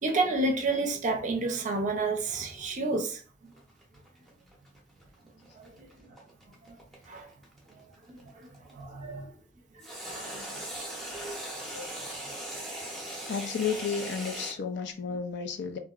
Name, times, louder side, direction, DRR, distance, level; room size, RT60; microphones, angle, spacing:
voice 1, 0.0-3.5 5.6-6.1 6.6-6.8 7.1-7.3 7.7-7.8 8.1-9.3 9.7-10.6 11.1-11.4, right 3 dB, 40° right, 0.5 m, -31 dB
Whipped Cream Spray Can, 3.5-8.7 9.8-14.5, right 1 dB, ahead, 0.7 m, -39 dB
voice 2, 13.3-15.8, left 6 dB, 60° left, 0.4 m, -32 dB
2.9 x 2.5 x 2.3 m
head